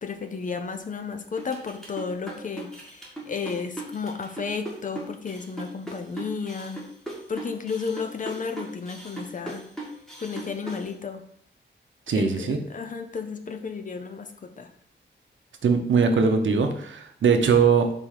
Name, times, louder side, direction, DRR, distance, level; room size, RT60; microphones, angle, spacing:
voice 1, 0.0-6.8 7.3-9.6 10.2-11.2 12.1-14.7, left 5 dB, 40° left, 7 dB, 0.6 m, -33 dB
sound 1, 1.4-10.9, right 2 dB, ahead, 1.5 m, -38 dB
voice 2, 12.1-12.6 15.6-17.9, right 5 dB, 80° right, 5 dB, 0.8 m, -21 dB
5.0 x 3.8 x 5.7 m, 0.67 s
wide cardioid pair, 160°, 20 cm